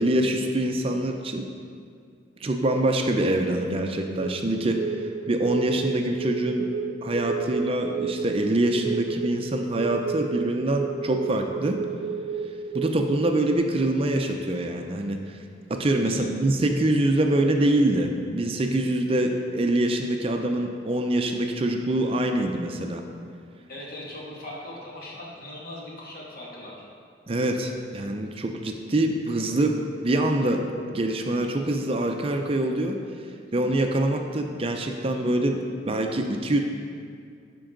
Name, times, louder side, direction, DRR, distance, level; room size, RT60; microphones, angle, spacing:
voice 1, 0.0-1.5 2.4-6.7 7.0-11.8 12.7-15.4 15.7-23.1 27.3-36.6, right 1 dB, 30° right, 4 dB, 0.5 m, -25 dB
sound 1, 4.2-13.6, right 5 dB, 70° right, 0.7 m, -32 dB
voice 2, 23.7-26.9, left 1 dB, 55° left, -5 dB, 1.9 m, -40 dB
11.5 x 5.3 x 3.8 m, 2.3 s
head